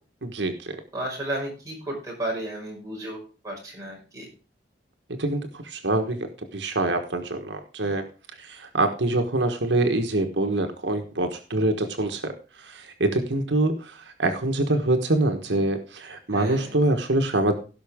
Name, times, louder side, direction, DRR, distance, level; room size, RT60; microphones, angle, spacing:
voice 1, 0.2-0.7 5.2-8.0 8.4-12.3 12.6-17.5, right 2 dB, 90° right, 5 dB, 1.4 m, -25 dB
voice 2, 0.9-3.2 3.4-4.3 16.3-16.7, right 1 dB, 20° right, -3 dB, 5.5 m, -33 dB
17.0 x 5.8 x 3.6 m, 0.35 s
head